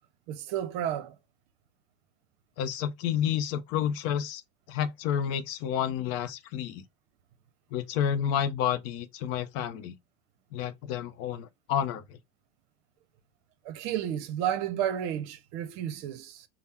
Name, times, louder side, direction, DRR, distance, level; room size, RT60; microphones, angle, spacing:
voice 1, 0.3-1.1 13.6-16.5, right 10 dB, 60° right, 0.7 m, -32 dB
voice 2, 2.6-4.4 4.7-6.8 7.7-9.9 10.5-12.0, left 9 dB, 50° left, 0.6 m, -30 dB
3.5 x 2.0 x 4.2 m
hypercardioid pair, 100°, 30 cm